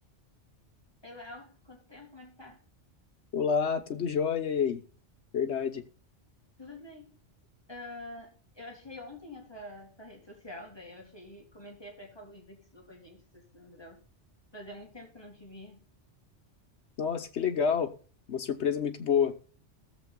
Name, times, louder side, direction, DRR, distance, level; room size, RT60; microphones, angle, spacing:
voice 1, 1.0-2.6 6.6-7.1 7.7-14.0 14.5-15.8, left 1 dB, 20° left, 2.3 m, -47 dB
voice 2, 3.3-4.8 5.3-5.8 17.0-17.9 18.3-19.3, left 7 dB, 70° left, 1.4 m, -28 dB
21.0 x 7.3 x 2.3 m
omnidirectional pair, 1.2 m